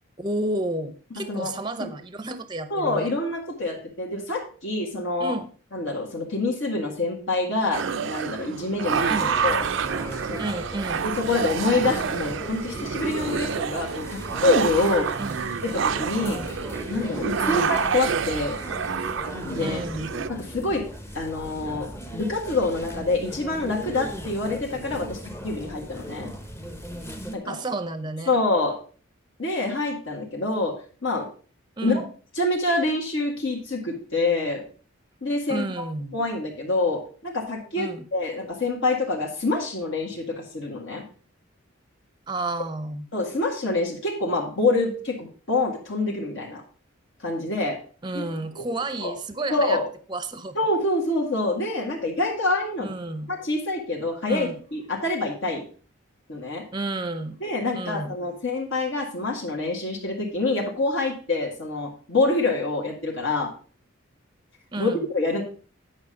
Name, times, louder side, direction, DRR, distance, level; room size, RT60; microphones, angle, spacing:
voice 1, 0.2-3.1 5.2-5.5 9.1-9.3 10.4-11.1 15.2-15.4 16.2-16.5 17.4-17.7 19.6-20.1 27.5-28.4 31.8-32.1 35.5-36.1 37.8-38.0 42.3-43.1 48.0-49.8 50.1-50.6 52.8-53.3 54.3-54.6 56.7-57.4 57.7-58.1 64.7-65.0, right 2 dB, 20° right, 11 dB, 0.7 m, -31 dB
voice 2, 2.7-5.3 5.7-9.1 9.4-9.6 10.3-10.5 11.0-15.2 15.6-16.4 16.9-18.6 19.4-19.8 20.3-20.8 21.1-25.2 25.4-26.3 27.3-27.6 28.3-28.8 29.4-30.8 31.0-31.3 31.8-32.0 32.4-34.6 35.2-35.8 36.1-41.0 43.1-46.6 47.2-47.8 48.1-48.2 48.6-48.7 49.0-49.1 49.5-49.9 50.5-52.9 53.3-55.6 56.3-56.6 57.4-63.5 64.8-65.4, left 2 dB, 65° left, -1 dB, 1.8 m, -26 dB
sound 1, 7.7-20.3, right 6 dB, 60° right, 0.5 m, -28 dB
sound 2, 8.9-27.4, equal, 10° left, 0.8 m, -38 dB
9.5 x 5.7 x 5.1 m, 0.40 s
head